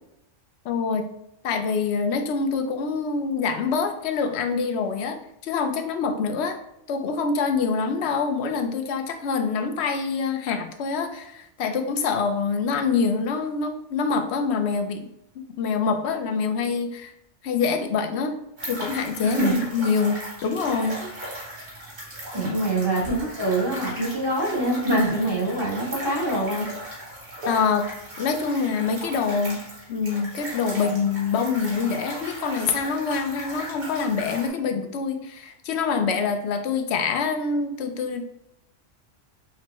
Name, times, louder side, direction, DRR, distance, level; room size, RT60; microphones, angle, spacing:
voice 1, 0.6-1.2 1.4-5.2 5.4-6.6 6.9-15.1 15.6-17.1 17.4-18.4 18.6-21.0 27.5-27.9 28.2-29.6 29.9-38.2, left 5 dB, 70° left, 6 dB, 0.8 m, -25 dB
sound 1, 18.6-34.5, equal, 40° right, 1.3 m, -37 dB
voice 2, 19.2-19.6 21.0-21.1 22.3-26.7, right 1 dB, 20° right, -4 dB, 1.1 m, -24 dB
5.9 x 2.1 x 2.9 m, 0.81 s
omnidirectional pair, 1.3 m